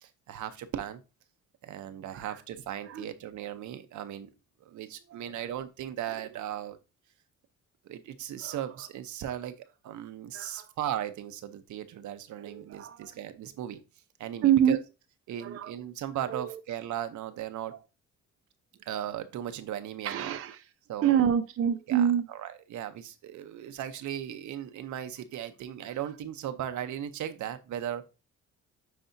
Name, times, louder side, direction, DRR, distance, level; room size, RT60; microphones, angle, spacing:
voice 1, 0.0-1.0 1.6-4.3 4.6-6.8 7.8-13.8 14.2-14.8 15.3-17.7 18.8-20.3 20.9-21.3 21.9-28.1, right 10 dB, 75° right, 0.9 m, -37 dB
voice 2, 10.3-10.7 12.4-13.1 14.4-14.8 15.4-15.7 16.2-16.5 17.7-17.8 20.0-20.6 21.0-22.3, right 9 dB, 50° right, 0.6 m, -27 dB
9.5 x 4.2 x 2.7 m
cardioid pair, 90°, 30 cm